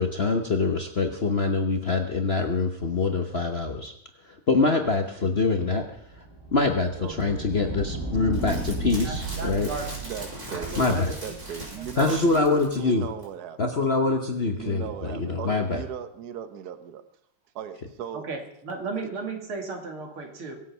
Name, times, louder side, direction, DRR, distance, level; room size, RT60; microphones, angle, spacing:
voice 1, 0.0-3.9 4.2-5.8 6.5-9.7 10.8-11.1 12.0-13.1 13.6-15.8, left 3 dB, 40° left, 4 dB, 0.9 m, -24 dB
sound 1, 6.0-12.4, right 3 dB, 10° left, 3.9 m, -35 dB
voice 2, 7.0-7.8 8.1-8.3 10.0-13.8 14.5-17.0 17.5-18.3, right 8 dB, 55° right, 10 dB, 1.4 m, -38 dB
sound 2, 8.3-12.9 13.2-13.3, right 1 dB, 35° right, 5.2 m, -40 dB
voice 3, 9.0-9.9 10.5-11.4 11.8-12.4 18.1-20.6, right 3 dB, 85° right, 2 dB, 3.4 m, -35 dB
22.5 x 8.3 x 5.6 m, 0.69 s
omnidirectional pair, 2.3 m